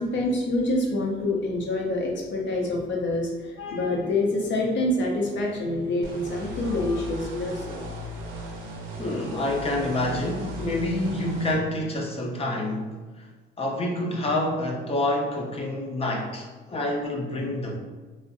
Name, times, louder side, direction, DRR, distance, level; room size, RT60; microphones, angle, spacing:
voice 1, 0.0-7.8, left 2 dB, 70° left, -1 dB, 0.6 m, -26 dB
sound 1, 6.0-11.5, equal, 85° right, 0.5 m, -37 dB
voice 2, 9.0-13.3 13.6-17.8, left 1 dB, 30° left, -1 dB, 0.5 m, -27 dB
2.5 x 2.1 x 2.5 m, 1.3 s
cardioid pair, 90°, 20 cm